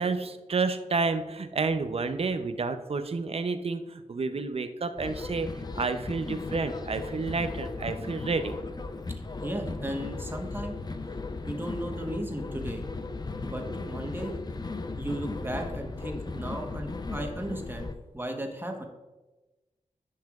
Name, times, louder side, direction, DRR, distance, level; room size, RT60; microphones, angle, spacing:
voice 1, 0.0-5.5 5.8-8.6, right 4 dB, 50° right, 9 dB, 0.6 m, -30 dB
sound 1, 5.0-17.9, left 3 dB, 30° left, 0.5 m, -36 dB
voice 2, 9.4-10.8 11.5-12.8 13.4-14.3 15.0-18.9, right 1 dB, 15° right, 3 dB, 1.1 m, -35 dB
10.0 x 5.6 x 2.4 m, 1.1 s
cardioid pair, 65°, 13 cm